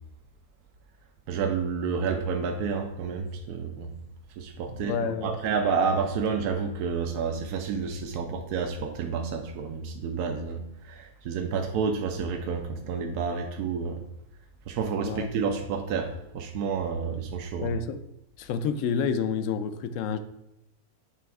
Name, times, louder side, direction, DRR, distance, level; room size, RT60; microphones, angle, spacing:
voice 1, 1.3-3.9 4.4-5.0 5.2-14.0 14.7-17.7, right 5 dB, 85° right, 4 dB, 1.2 m, -30 dB
voice 2, 4.7-5.4 15.0-15.3 17.6-18.0 18.4-20.2, left 6 dB, 65° left, 10 dB, 0.8 m, -29 dB
8.5 x 3.4 x 4.7 m, 0.85 s
omnidirectional pair, 1.6 m